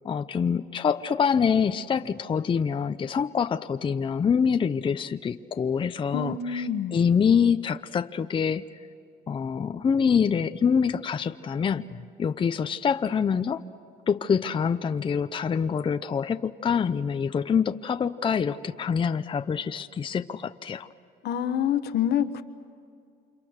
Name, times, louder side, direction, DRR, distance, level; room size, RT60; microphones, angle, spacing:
voice 1, 0.0-8.7 9.3-13.6 14.1-20.9, left 6 dB, 30° left, 9 dB, 0.7 m, -25 dB
voice 2, 6.1-7.0 21.2-22.4, left 8 dB, 75° left, 10 dB, 1.3 m, -27 dB
29.0 x 27.0 x 6.6 m, 2.4 s
cardioid pair, 110°, 17 cm